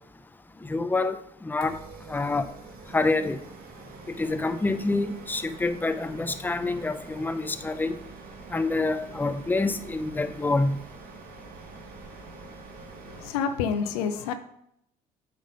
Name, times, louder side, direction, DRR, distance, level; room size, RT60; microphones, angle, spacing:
voice 1, 0.6-1.8 2.1-2.5 2.9-3.4 4.1-8.0 8.5-10.8, left 3 dB, 10° left, 0.6 m, -27 dB
sound 1, 1.6-13.3, right 4 dB, 50° right, 1.3 m, -46 dB
voice 2, 13.1-14.3, left 6 dB, 80° left, 0.7 m, -28 dB
8.3 x 3.5 x 5.4 m
hypercardioid pair, 60°, 19 cm